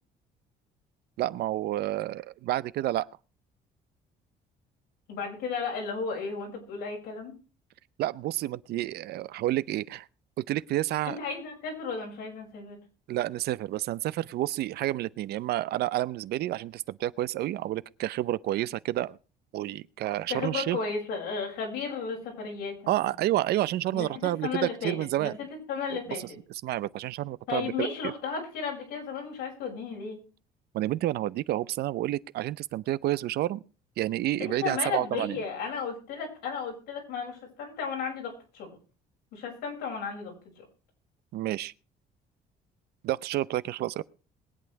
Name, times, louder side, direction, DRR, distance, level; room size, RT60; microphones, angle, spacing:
voice 1, 1.2-3.1 8.0-10.1 10.4-11.2 13.1-19.2 19.5-20.8 22.9-25.4 26.6-28.1 30.7-33.6 34.0-35.4 41.3-41.7 43.0-44.0, right 15 dB, 70° right, 0.7 m, -29 dB
voice 2, 5.1-7.3 11.1-12.8 20.3-23.0 23.9-26.4 27.5-30.2 34.4-38.8 39.3-40.7, left 5 dB, 90° left, 6.6 m, -34 dB
21.5 x 8.6 x 4.6 m
cardioid pair, 110°, 17 cm